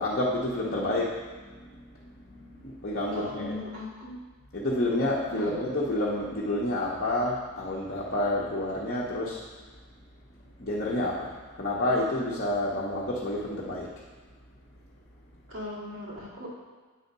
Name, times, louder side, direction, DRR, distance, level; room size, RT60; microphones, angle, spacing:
voice 1, 0.0-3.5 4.5-9.4 10.6-14.0, left 1 dB, 45° left, -5 dB, 0.9 m, -29 dB
voice 2, 3.1-4.2 5.3-5.5 15.5-16.5, left 1 dB, 60° right, -6 dB, 2.3 m, -38 dB
8.4 x 4.1 x 5.4 m, 1.4 s
head